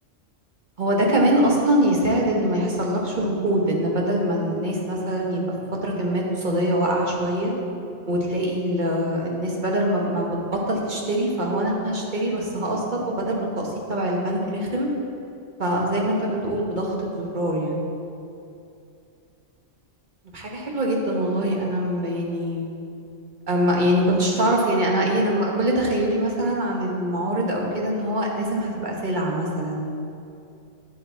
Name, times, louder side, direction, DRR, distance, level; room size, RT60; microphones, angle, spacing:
voice 1, 0.8-5.4 5.8-7.5 8.1-14.9 15.6-17.8 20.3-22.7 23.5-29.9, right 1 dB, 40° right, -2 dB, 1.3 m, -23 dB
9.3 x 8.3 x 3.4 m, 2.6 s
omnidirectional pair, 1.3 m